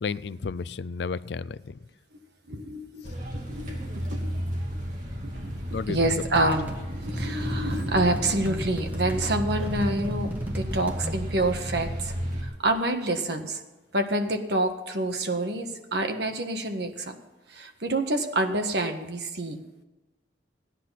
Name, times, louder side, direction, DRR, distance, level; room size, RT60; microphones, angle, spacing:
voice 1, 0.0-1.8 5.7-6.2, left 5 dB, 70° left, 18 dB, 0.4 m, -32 dB
voice 2, 2.5-3.0 3.5-4.4 4.7-4.8 5.2-12.1 12.4-13.6 13.9-17.1 17.5-19.6, right 2 dB, 70° right, 5 dB, 1.6 m, -28 dB
sound 1, 3.0-12.4, equal, 45° right, 3.0 m, -33 dB
Drawer open or close, 5.3-6.2 6.8-10.3 10.6-10.7, right 1 dB, 90° right, 2.9 m, -49 dB
sound 2, 6.0-11.2, equal, 10° right, 1.4 m, -36 dB
16.0 x 10.0 x 5.8 m, 1.1 s
head